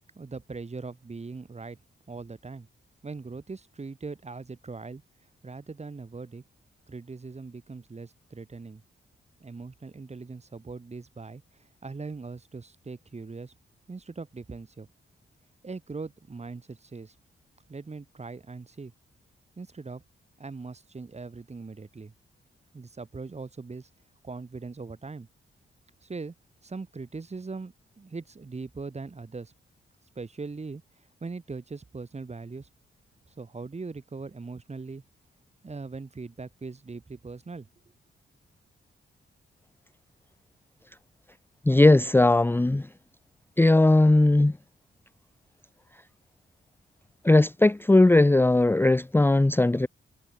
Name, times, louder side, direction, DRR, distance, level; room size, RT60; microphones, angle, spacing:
voice 1, 0.1-1.8 2.1-2.7 3.0-5.0 5.4-6.4 6.9-8.8 9.4-13.5 13.9-14.9 15.6-17.2 17.7-18.9 19.6-20.0 20.4-22.1 22.7-23.9 24.2-25.3 26.0-26.3 26.6-29.5 30.1-32.7 33.3-35.0 35.6-37.7, right 4 dB, 30° right, 4.9 m, -40 dB
voice 2, 41.6-42.9 43.6-44.6 47.2-49.9, left 2 dB, 10° left, 0.7 m, -19 dB
cardioid pair, 105°, 21 cm